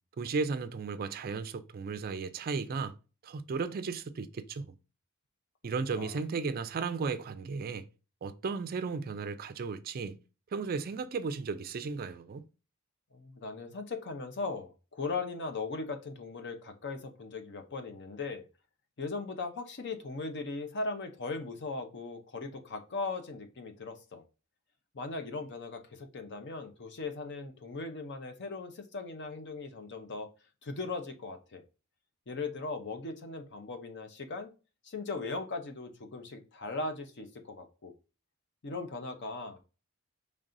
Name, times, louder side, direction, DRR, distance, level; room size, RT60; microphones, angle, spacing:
voice 1, 0.2-3.0 3.2-4.7 5.6-7.9 8.2-10.2 10.5-12.4, right 4 dB, 45° right, 0.4 m, -35 dB
voice 2, 13.1-18.5 19.0-24.2 24.9-30.3 30.6-31.6 32.3-34.5 34.8-37.9 38.6-39.6, left 3 dB, 55° left, 0.7 m, -38 dB
5.3 x 3.3 x 2.5 m
head